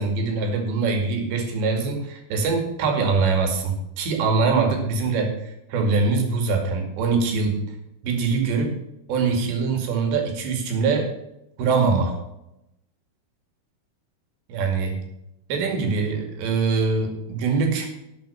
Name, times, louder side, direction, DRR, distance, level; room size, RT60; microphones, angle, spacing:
voice 1, 0.0-7.6 8.0-8.7 9.1-11.1 11.6-12.2 14.5-15.0 15.5-17.9, right 4 dB, 70° right, 4 dB, 4.4 m, -23 dB
12.0 x 8.2 x 5.7 m, 0.86 s
omnidirectional pair, 5.4 m